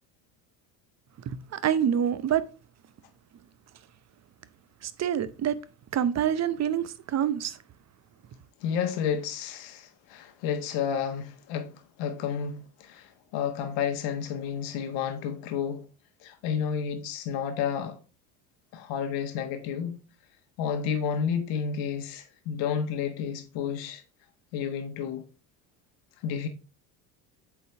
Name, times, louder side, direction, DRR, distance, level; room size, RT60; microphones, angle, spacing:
voice 1, 1.2-2.4 4.8-5.6 5.9-7.6, right 9 dB, 35° right, 0.7 m, -26 dB
voice 2, 8.6-15.8 16.2-18.0 18.7-20.0 20.6-24.0 24.5-25.2 26.2-26.5, left 7 dB, 70° left, 1.4 m, -31 dB
8.3 x 3.9 x 3.4 m
hypercardioid pair, 80°, 47 cm